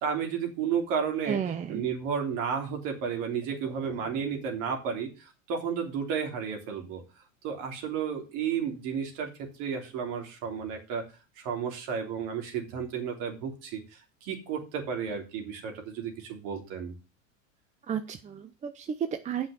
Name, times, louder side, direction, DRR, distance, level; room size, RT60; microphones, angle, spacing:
voice 1, 0.0-1.4 1.7-7.0 7.4-11.0 11.4-16.9, right 7 dB, 50° right, 3 dB, 3.4 m, -32 dB
voice 2, 1.3-1.8 3.6-3.7 17.9-19.5, right 8 dB, 20° right, 9 dB, 0.7 m, -33 dB
8.2 x 5.7 x 6.4 m, 0.31 s
hypercardioid pair, 105°, 40 cm